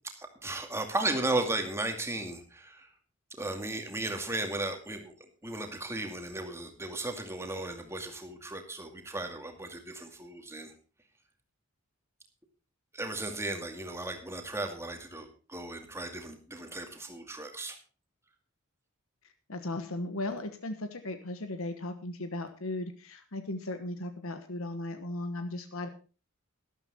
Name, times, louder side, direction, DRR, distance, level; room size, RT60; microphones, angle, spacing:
voice 1, 0.2-2.9 3.4-5.2 5.4-10.7 12.9-17.8, right 2 dB, 10° right, 5 dB, 2.3 m, -35 dB
voice 2, 19.5-25.9, left 2 dB, 70° left, 8 dB, 1.3 m, -36 dB
12.5 x 12.5 x 4.2 m, 0.35 s
head